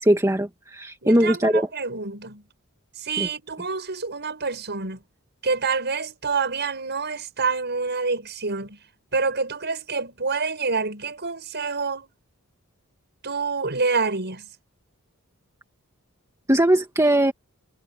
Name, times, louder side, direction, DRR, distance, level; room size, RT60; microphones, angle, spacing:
voice 1, 0.0-1.7 3.2-3.3 16.5-17.3, right 1 dB, 15° right, 2.1 m, -20 dB
voice 2, 1.0-2.4 3.0-5.0 5.4-8.8 9.1-12.1 13.2-14.5, right 4 dB, 50° right, 7.7 m, -27 dB
head